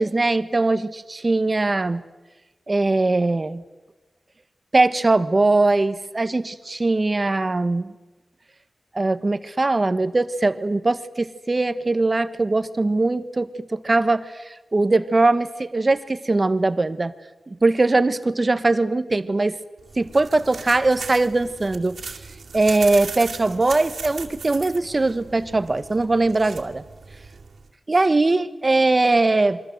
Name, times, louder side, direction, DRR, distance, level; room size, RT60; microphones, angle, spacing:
voice 1, 0.0-2.0 2.7-3.6 4.7-7.9 8.9-14.2 14.7-17.1 17.5-19.6 20.0-22.0 22.5-26.8 27.9-29.6, right 2 dB, 30° right, 12 dB, 1.3 m, -21 dB
sound 1, 19.8-27.7, right 5 dB, 75° right, 2.7 m, -38 dB
28.5 x 23.5 x 7.9 m, 1.1 s
wide cardioid pair, 115°, 0 cm